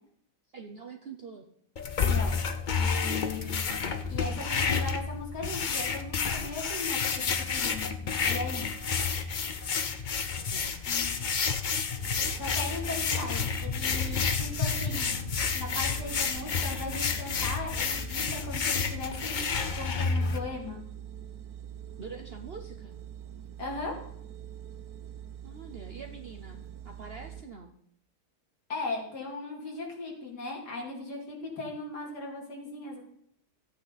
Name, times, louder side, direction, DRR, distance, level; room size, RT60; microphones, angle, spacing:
voice 1, 0.5-1.5 10.5-11.1 22.0-23.0 25.4-27.7, right 5 dB, 55° right, 5 dB, 0.7 m, -45 dB
sound 1, 1.8-20.4, left 5 dB, 55° left, 0.5 m, -30 dB
voice 2, 2.0-2.4 2.7-8.7 10.8-11.2 12.4-15.2 15.5-19.4 19.7-20.8 23.6-23.9 28.7-33.0, left 3 dB, 75° left, -2 dB, 3.3 m, -38 dB
sound 2, 12.0-27.4, right 10 dB, 70° right, 1.2 m, -44 dB
14.0 x 8.6 x 4.0 m, 0.68 s
omnidirectional pair, 1.8 m